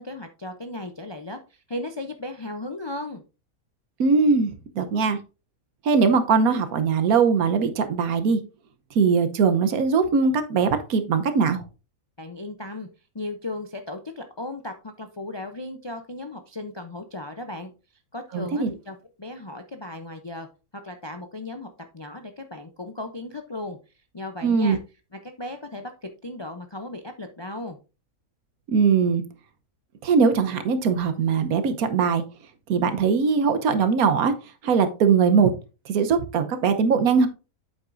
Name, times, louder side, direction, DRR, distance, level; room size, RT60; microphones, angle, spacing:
voice 1, 0.0-3.2 12.2-12.9 13.1-17.7 18.1-20.5 20.7-21.7 21.9-23.8 24.1-24.8 25.1-27.8, left 2 dB, 45° left, 6 dB, 0.3 m, -36 dB
voice 2, 4.0-5.2 5.8-8.4 8.9-11.6 18.3-18.7 24.4-24.8 28.7-29.2 30.0-32.2 32.7-34.3 34.6-35.5 35.9-37.3, right 5 dB, 80° right, 10 dB, 1.4 m, -21 dB
8.1 x 7.8 x 2.6 m, 0.31 s
omnidirectional pair, 1.5 m